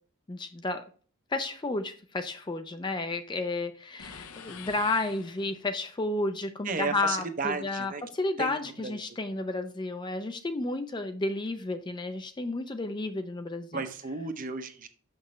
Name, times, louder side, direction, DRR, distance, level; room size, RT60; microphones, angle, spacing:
voice 1, 0.3-0.9 1.3-13.8, left 2 dB, 20° left, 8 dB, 0.4 m, -32 dB
sound 1, 4.0-5.8, left 6 dB, 80° left, 0.7 m, -46 dB
voice 2, 6.6-8.0 8.4-8.6 8.8-9.0 13.7-14.9, right 4 dB, 40° right, 8 dB, 0.6 m, -33 dB
6.3 x 5.9 x 3.1 m, 0.41 s
head